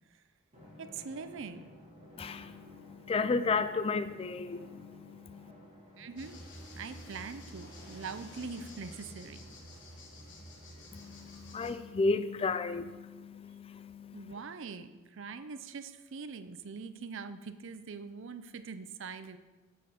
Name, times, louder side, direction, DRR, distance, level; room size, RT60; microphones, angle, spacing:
Drum, 0.5-11.5, left 1 dB, 35° right, 3.2 m, -56 dB
voice 1, 0.8-1.7 6.0-6.4 6.7-9.4 14.1-19.4, right 5 dB, 65° right, 11 dB, 0.6 m, -43 dB
voice 2, 2.2-5.5 10.9-14.3, left 3 dB, 25° left, 12 dB, 0.4 m, -33 dB
sound 1, 6.2-11.7, left 1 dB, 60° left, 1.6 m, -49 dB
7.5 x 6.7 x 6.6 m, 1.3 s
head